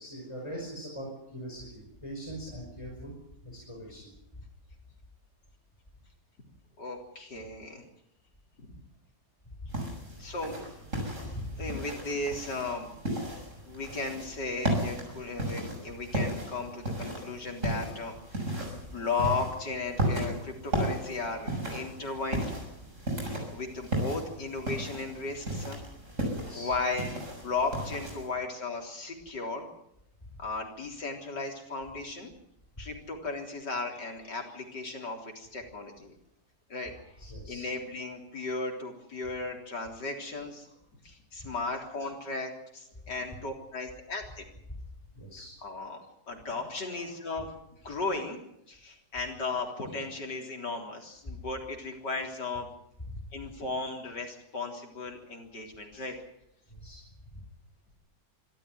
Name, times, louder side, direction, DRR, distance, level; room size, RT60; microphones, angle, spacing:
voice 1, 0.0-3.1 3.4-4.1 11.2-11.7 26.3-26.7 37.2-37.7 40.7-40.8 45.1-45.5 46.9-47.1 53.1-53.2 56.7-57.4, equal, 15° left, -1 dB, 5.5 m, -42 dB
voice 2, 6.8-7.8 8.6-8.7 10.2-10.6 11.6-12.9 13.7-18.5 18.9-22.4 23.2-25.8 26.5-29.7 30.4-32.3 32.8-36.1 36.7-36.9 37.5-40.7 41.0-44.4 45.6-47.5 47.8-48.4 48.7-52.7 53.3-56.2, left 3 dB, 80° left, 2 dB, 4.3 m, -35 dB
sound 1, 9.7-28.3, right 1 dB, 45° right, 7.0 m, -35 dB
25.5 x 13.5 x 9.4 m, 0.77 s
omnidirectional pair, 1.8 m